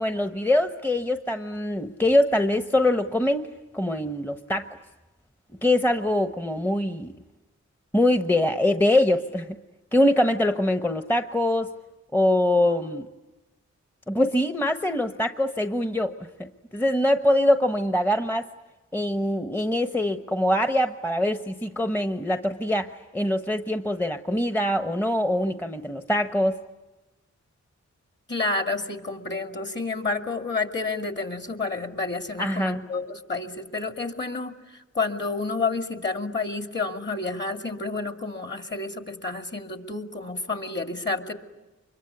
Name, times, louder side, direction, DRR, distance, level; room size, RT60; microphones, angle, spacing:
voice 1, 0.0-3.4 3.7-4.7 5.6-7.1 7.9-9.6 9.9-11.7 12.1-13.1 14.1-16.1 16.4-18.4 18.9-26.6 32.4-32.8, left 1 dB, 5° left, 7 dB, 1.1 m, -23 dB
voice 2, 28.3-41.3, left 3 dB, 35° left, 5 dB, 2.5 m, -30 dB
25.0 x 22.5 x 9.6 m, 1.1 s
cardioid pair, 45°, 30 cm